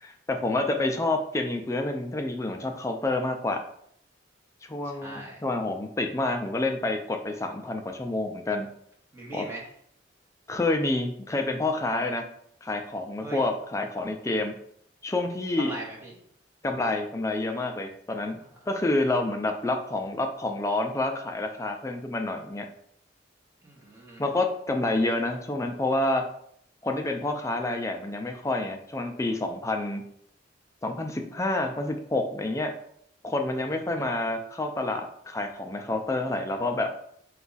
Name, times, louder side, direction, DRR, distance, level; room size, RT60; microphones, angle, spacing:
voice 1, 0.0-3.6 4.7-8.7 9.3-9.5 10.5-12.3 12.6-14.5 15.0-15.7 16.6-18.4 18.7-22.7 24.2-26.3 26.8-30.0 30.8-32.7 33.2-36.9, left 2 dB, 15° left, 4 dB, 0.3 m, -28 dB
voice 2, 5.0-5.4 9.1-9.7 13.2-13.5 15.6-16.1 18.3-18.5 23.6-24.2 33.9-34.1, right 1 dB, 15° right, -5 dB, 1.1 m, -40 dB
4.6 x 2.3 x 3.9 m, 0.67 s
head